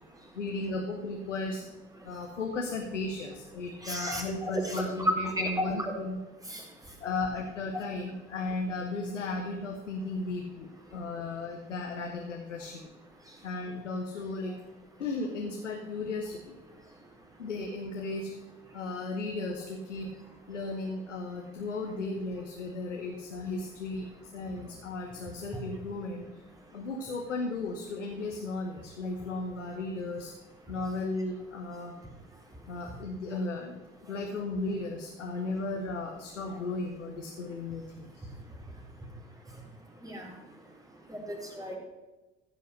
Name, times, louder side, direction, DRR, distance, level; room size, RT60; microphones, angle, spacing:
voice 1, 0.3-1.6 2.0-6.2 7.0-12.9 13.4-14.6 15.0-16.5 17.4-18.3 18.7-20.1 20.5-26.3 26.7-30.3 30.7-32.0 32.7-33.7 34.0-38.3, left 3 dB, 85° left, 2 dB, 1.1 m, -35 dB
voice 2, 3.8-6.0 6.5-6.6 7.7-7.8 40.0-40.3 41.1-41.8, equal, 10° right, -1 dB, 4.0 m, -32 dB
15.0 x 5.6 x 6.3 m, 1.1 s
figure-of-eight pair, 60°, 36 cm